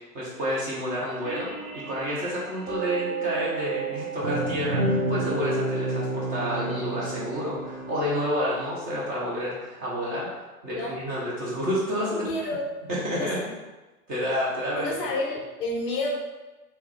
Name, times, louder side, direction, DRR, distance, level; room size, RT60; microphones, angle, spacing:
voice 1, 0.1-12.2 12.9-13.4 14.1-14.9, equal, 20° right, -5 dB, 0.6 m, -29 dB
sound 1, 1.2-8.2, right 9 dB, 55° right, 1.0 m, -36 dB
sound 2, 4.2-8.4, equal, 85° right, 0.9 m, -29 dB
voice 2, 12.1-12.7 13.1-13.3 14.8-16.1, left 1 dB, 35° left, -1 dB, 0.6 m, -30 dB
3.5 x 2.8 x 3.1 m, 1.2 s
hypercardioid pair, 115°, 48 cm